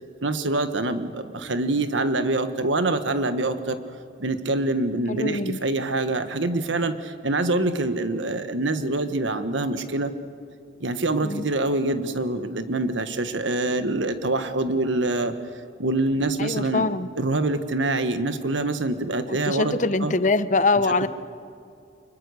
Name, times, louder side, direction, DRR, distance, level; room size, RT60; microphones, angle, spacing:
voice 1, 0.2-3.8 4.2-10.1 10.8-15.3 15.8-16.9 17.2-19.7 20.0-20.1, right 2 dB, 85° right, 9 dB, 1.5 m, -25 dB
voice 2, 5.1-5.6 11.2-11.5 16.4-17.1 19.3-21.1, left 3 dB, 40° left, 13 dB, 0.7 m, -23 dB
25.5 x 22.0 x 6.6 m, 2.5 s
head